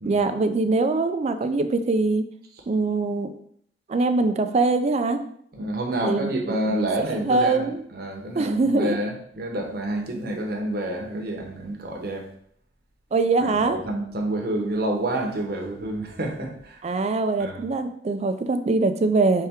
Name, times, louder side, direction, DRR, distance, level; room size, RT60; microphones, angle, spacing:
voice 1, 0.0-2.3 2.7-3.3 3.9-5.2 6.0-6.6 7.2-7.8 8.4-9.0 13.1-13.8 16.8-19.5, right 3 dB, 40° right, 8 dB, 0.4 m, -23 dB
voice 2, 5.5-12.3 13.4-16.8 17.4-17.6, right 1 dB, 60° right, 1 dB, 0.9 m, -28 dB
4.3 x 3.4 x 3.5 m, 0.66 s
head